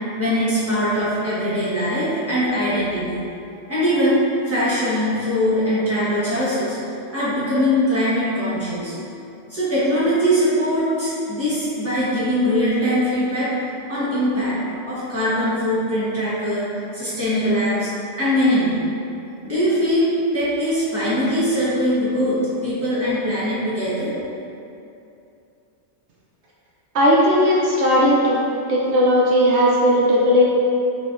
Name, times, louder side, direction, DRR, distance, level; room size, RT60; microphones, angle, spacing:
voice 1, 0.2-3.2 3.7-4.2 4.5-6.8 7.1-8.9 9.5-13.5 13.9-14.6 14.9-16.6 16.9-17.9 18.2-18.8 19.4-24.1, equal, 15° right, -11 dB, 1.0 m, -21 dB
voice 2, 26.9-30.5, equal, 75° right, -5 dB, 0.8 m, -17 dB
3.8 x 3.8 x 2.5 m, 2.7 s
omnidirectional pair, 1.2 m